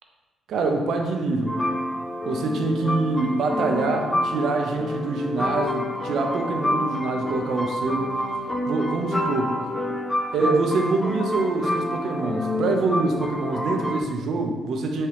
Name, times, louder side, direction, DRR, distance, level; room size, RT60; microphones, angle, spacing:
voice 1, 0.5-1.6 2.3-8.1 8.7-9.6 10.3-15.1, right 3 dB, 70° right, 3 dB, 0.5 m, -25 dB
sound 1, 1.5-14.0, left 1 dB, 15° left, 0.4 m, -28 dB
3.6 x 2.8 x 3.4 m, 1.3 s
cardioid pair, 90°, 0 cm